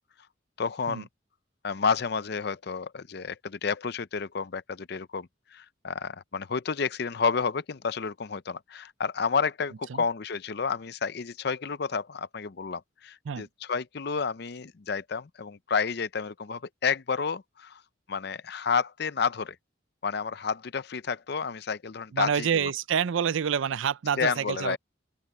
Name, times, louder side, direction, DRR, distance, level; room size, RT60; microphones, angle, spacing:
voice 1, 0.6-1.1 1.6-17.8 18.1-19.6 20.0-22.7 24.2-24.8, left 5 dB, 55° left, 0.6 m, -30 dB
voice 2, 22.1-24.8, right 7 dB, 75° right, 0.4 m, -27 dB
open air
head